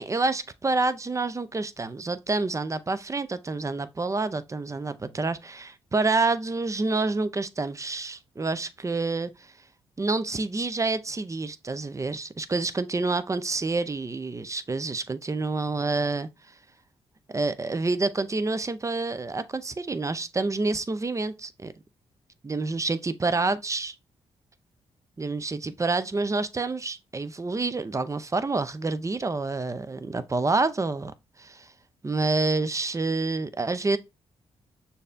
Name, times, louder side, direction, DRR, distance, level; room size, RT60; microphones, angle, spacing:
voice 1, 0.0-9.5 10.0-16.3 17.3-21.7 22.4-23.9 25.2-31.7 32.0-34.0, right 3 dB, 25° right, 0.5 m, -28 dB
6.5 x 2.7 x 2.5 m
supercardioid pair, 45°, 13 cm